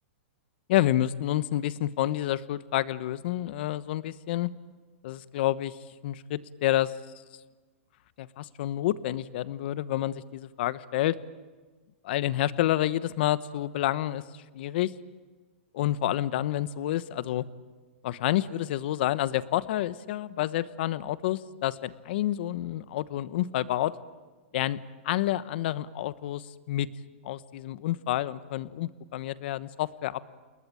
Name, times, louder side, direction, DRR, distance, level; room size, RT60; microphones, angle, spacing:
voice 1, 0.7-4.5 5.0-5.8 6.0-6.9 8.2-11.2 12.0-14.9 15.7-17.4 18.0-23.9 24.5-24.8 25.0-26.9 27.2-30.2, left 13 dB, 55° left, 15 dB, 1.1 m, -29 dB
29.0 x 20.5 x 9.0 m, 1.3 s
hypercardioid pair, 145°, 7 cm